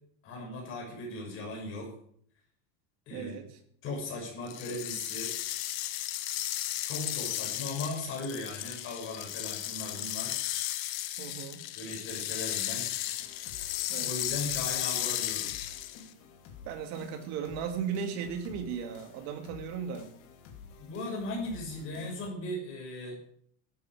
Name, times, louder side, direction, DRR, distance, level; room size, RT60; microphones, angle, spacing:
voice 1, 0.2-1.9 3.1-3.4 3.8-5.3 6.8-10.4 11.7-12.9 14.0-15.5 20.8-23.2, left 2 dB, 30° left, 0 dB, 6.2 m, -38 dB
voice 2, 3.1-3.5 11.2-11.6 13.9-14.1 16.7-20.1, right 7 dB, 40° right, 6 dB, 2.3 m, -36 dB
sound 1, 4.5-16.1, left 14 dB, 85° left, 1.6 m, -34 dB
sound 2, 13.0-22.3, left 5 dB, 50° left, 3.0 m, -51 dB
15.0 x 12.0 x 4.9 m, 0.62 s
cardioid pair, 175°, 40 cm